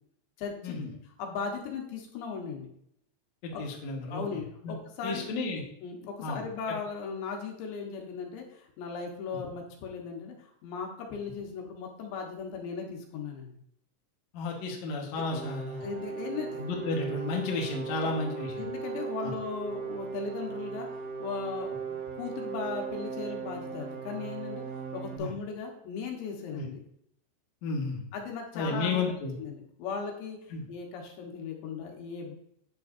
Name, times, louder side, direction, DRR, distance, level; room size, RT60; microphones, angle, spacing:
voice 1, 0.4-2.7 3.5-3.6 4.1-5.3 5.8-13.5 15.8-16.7 18.0-18.1 18.6-26.8 28.1-29.1 29.4-32.3, left 5 dB, 75° left, 1 dB, 3.5 m, -38 dB
voice 2, 3.4-4.2 4.6-4.7 5.0-5.6 6.2-6.4 14.3-15.9 16.6-18.5 19.2-19.3 25.2-25.3 26.5-26.7 27.6-28.0 28.5-29.3 30.5-30.6, left 3 dB, 60° left, -1 dB, 1.9 m, -32 dB
sound 1, 15.3-25.2, right 6 dB, 60° right, 1.3 m, -37 dB
10.0 x 7.7 x 2.7 m, 0.71 s
omnidirectional pair, 5.3 m